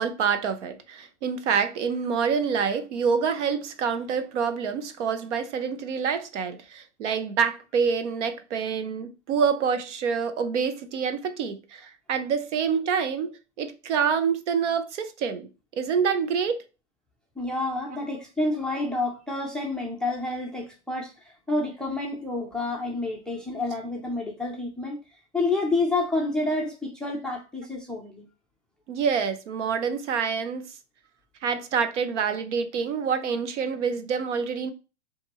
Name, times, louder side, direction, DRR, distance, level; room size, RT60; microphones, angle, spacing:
voice 1, 0.0-15.5 15.8-16.6 28.9-30.7 31.4-34.7, right 6 dB, 75° right, 0.9 m, -27 dB
voice 2, 17.4-25.0 25.3-28.3, left 2 dB, ahead, 0.3 m, -29 dB
6.9 x 2.6 x 2.9 m
hypercardioid pair, 130°, 36 cm